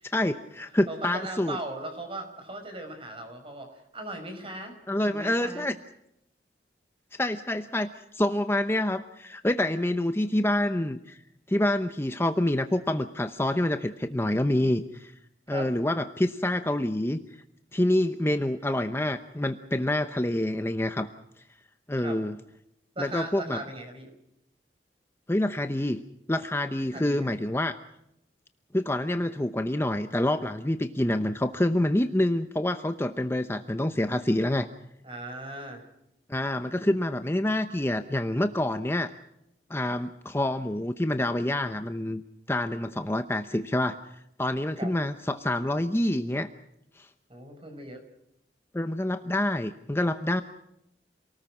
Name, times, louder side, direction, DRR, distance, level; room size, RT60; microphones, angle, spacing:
voice 1, 0.0-1.6 4.9-5.7 7.1-11.2 11.5-15.1 15.5-17.2 17.7-21.1 21.9-22.4 23.0-23.6 25.3-26.0 26.3-27.8 28.7-34.7 36.3-39.1 39.7-42.2 42.5-46.5 47.0-47.1 48.7-50.4, left 1 dB, 15° left, 8 dB, 0.8 m, -27 dB
voice 2, 0.9-5.7 14.5-14.7 15.5-15.7 18.2-18.5 22.0-22.2 23.0-24.1 26.9-27.4 35.0-35.8 44.8-44.9 47.3-48.0, right 2 dB, 30° right, 6 dB, 5.4 m, -39 dB
28.0 x 19.0 x 6.1 m, 0.81 s
head